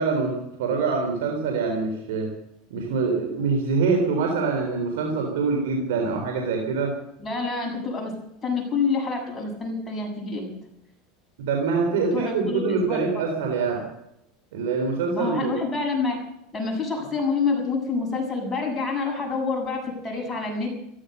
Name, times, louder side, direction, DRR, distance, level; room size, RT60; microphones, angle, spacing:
voice 1, 0.0-2.3 2.7-6.9 11.4-13.8 14.5-15.5, right 4 dB, 85° right, 3 dB, 3.8 m, -25 dB
voice 2, 7.2-8.1 8.4-10.5 11.9-13.0 15.1-16.2 16.5-20.7, left 4 dB, 15° left, 0 dB, 7.2 m, -27 dB
15.5 x 13.5 x 6.7 m, 0.79 s
supercardioid pair, 120°, 0 cm